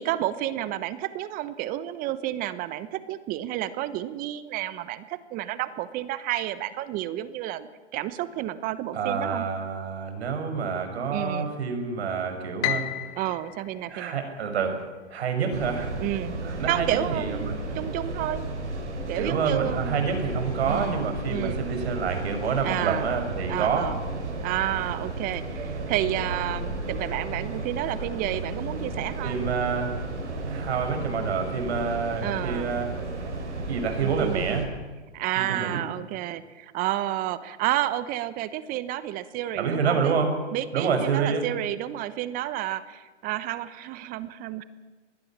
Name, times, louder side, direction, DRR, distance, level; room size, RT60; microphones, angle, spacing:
voice 1, 0.0-9.5 11.1-11.5 13.2-14.2 16.0-16.4 16.7-18.5 19.1-20.1 20.7-21.0 21.3-21.6 22.6-23.1 23.5-24.0 24.4-29.4 32.2-32.7 34.0-34.6 35.1-40.2 40.5-44.7, right 14 dB, 25° right, 15 dB, 1.0 m, -30 dB
voice 2, 8.9-12.9 13.9-14.7 15.1-15.9 16.4-17.6 19.1-23.9 29.2-29.9 30.4-33.0 33.7-34.7 35.4-35.8 39.6-40.3 40.7-41.4, right 5 dB, 60° right, 5 dB, 6.2 m, -28 dB
Piano, 12.6-14.9, left 14 dB, 30° left, 1.4 m, -33 dB
sound 1, 15.5-34.7, right 2 dB, 75° right, 6.6 m, -33 dB
25.0 x 20.0 x 7.4 m, 1.3 s
hypercardioid pair, 130°, 35 cm